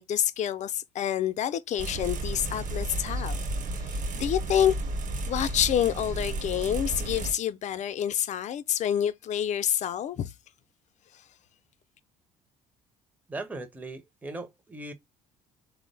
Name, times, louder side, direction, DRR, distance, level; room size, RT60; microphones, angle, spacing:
voice 1, 0.0-3.4 3.9-4.8 5.3-10.3, left 10 dB, 45° left, 0.4 m, -28 dB
sound 1, 1.8-7.3, right 2 dB, 50° right, 1.0 m, -32 dB
voice 2, 13.3-14.9, right 2 dB, 10° right, 0.6 m, -38 dB
3.6 x 2.0 x 3.3 m
hypercardioid pair, 55°, 17 cm